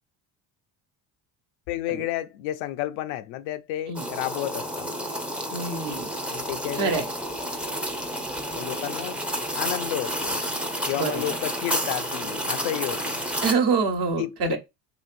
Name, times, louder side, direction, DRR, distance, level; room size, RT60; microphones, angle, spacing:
voice 1, 1.7-4.9 6.3-7.0 8.6-9.2 9.5-10.4 10.9-13.2 14.2-14.6, left 13 dB, 80° left, 0.6 m, -31 dB
sound 1, 3.9-13.5, equal, 5° right, 0.4 m, -30 dB
voice 2, 5.5-6.1 6.7-7.0 10.9-11.4 13.4-14.6, right 5 dB, 60° right, 1.1 m, -26 dB
3.0 x 2.8 x 2.5 m
supercardioid pair, 90°, 45 cm